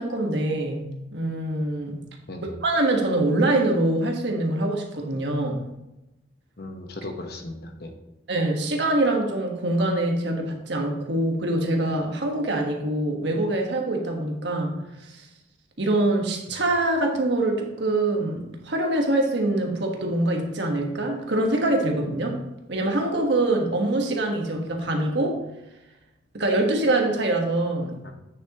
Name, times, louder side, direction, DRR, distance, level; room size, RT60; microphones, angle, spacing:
voice 1, 0.0-2.0 2.6-5.7 8.3-14.8 15.1-15.3 15.8-22.4 22.7-25.4 26.3-28.0, right 2 dB, 65° right, 2 dB, 1.3 m, -24 dB
voice 2, 6.6-7.9 28.0-28.1, left 2 dB, 55° left, 4 dB, 1.1 m, -37 dB
8.9 x 6.9 x 2.9 m, 0.93 s
head